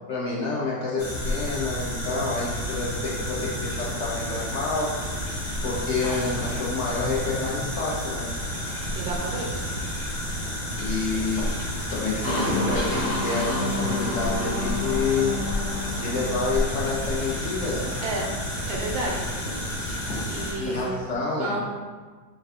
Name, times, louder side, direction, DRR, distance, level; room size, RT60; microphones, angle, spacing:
voice 1, 0.1-4.9 5.6-8.3 10.8-11.5 11.9-15.4 15.9-18.0 20.6-21.6, left 4 dB, 85° left, -5 dB, 0.6 m, -28 dB
sound 1, 1.0-20.9, equal, 65° left, 1.7 m, -30 dB
voice 2, 8.9-9.6 18.0-18.3 18.7-19.3 20.3-21.0 21.4-21.6, right 2 dB, 70° right, -2 dB, 1.1 m, -30 dB
sound 2, 12.2-17.9, left 2 dB, 45° left, 0.8 m, -30 dB
5.0 x 2.6 x 3.3 m, 1.4 s
omnidirectional pair, 2.0 m